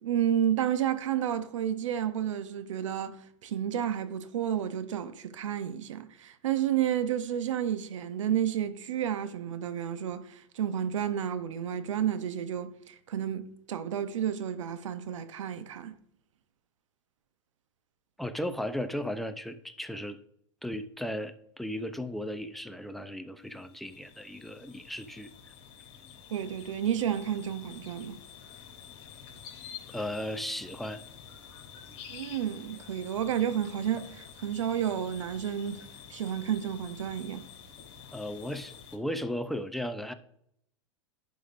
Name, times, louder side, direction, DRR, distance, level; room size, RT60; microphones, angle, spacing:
voice 1, 0.0-3.2 3.4-16.0 26.3-28.2 32.1-35.9 36.1-37.4, right 10 dB, 80° right, 0.7 m, -31 dB
voice 2, 18.2-20.2 20.6-25.3 29.9-31.0 38.1-40.1, left 1 dB, ahead, 0.5 m, -36 dB
sound 1, 23.4-39.0, left 8 dB, 50° left, 3.0 m, -49 dB
11.0 x 5.1 x 2.5 m
hypercardioid pair, 120°, 16 cm